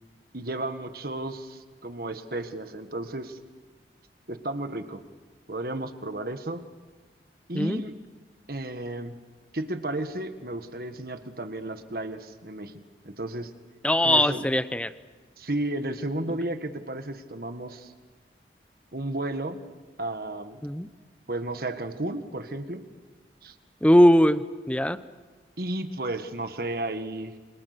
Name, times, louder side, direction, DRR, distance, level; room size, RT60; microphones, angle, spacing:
voice 1, 0.3-3.4 4.3-5.0 5.5-6.6 7.5-7.9 8.5-9.2 9.5-12.7 13.0-13.5 14.0-14.4 15.4-17.9 18.9-19.6 20.0-20.6 21.3-22.9 23.4-23.5 25.6-27.4, right 1 dB, 55° right, 8 dB, 1.7 m, -33 dB
voice 2, 13.8-14.9 20.6-20.9 23.8-24.4 24.7-25.0, equal, 5° left, 12 dB, 0.8 m, -20 dB
29.0 x 26.0 x 6.8 m, 1.3 s
head